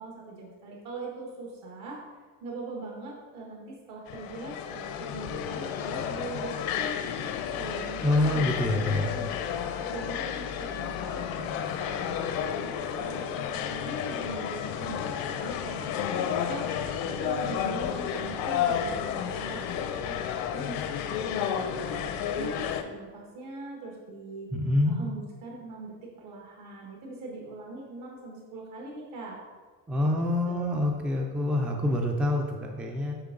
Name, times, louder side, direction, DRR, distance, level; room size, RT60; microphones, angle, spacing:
voice 1, 0.0-2.0 2.4-7.0 7.6-9.3 9.8-12.6 13.0-16.6 17.2-20.2 20.5-24.5 24.8-29.4 30.0-30.9, right 3 dB, 65° right, -2 dB, 1.4 m, -41 dB
sound 1, 4.1-22.8, left 8 dB, 70° left, 0.7 m, -32 dB
voice 2, 8.0-9.1 24.5-25.0 29.9-33.1, left 1 dB, 5° right, 2 dB, 0.3 m, -26 dB
9.6 x 3.5 x 3.8 m, 1.5 s
cardioid pair, 165°, 36 cm